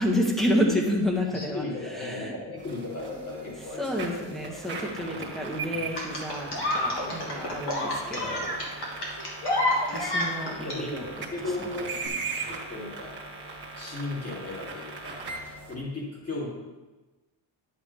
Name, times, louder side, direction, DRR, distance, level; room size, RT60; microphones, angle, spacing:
voice 1, 0.0-1.6 1.9-2.3 3.8-8.5 8.8-9.0 9.9-11.1, equal, ahead, -1 dB, 1.2 m, -29 dB
voice 2, 1.3-4.6 5.1-5.9 7.0-8.0 9.2-9.3 10.0-10.1 10.6-11.0 11.3-12.0 12.5-13.2 13.4-15.2 15.7-16.5, left 2 dB, 30° left, -5 dB, 2.7 m, -37 dB
sound 1, 2.6-15.7, right 4 dB, 20° right, 1.6 m, -39 dB
sound 2, 6.0-10.8 11.9-12.1, left 1 dB, 50° left, 2.3 m, -28 dB
11.0 x 7.1 x 3.4 m, 1.2 s
cardioid pair, 160°, 49 cm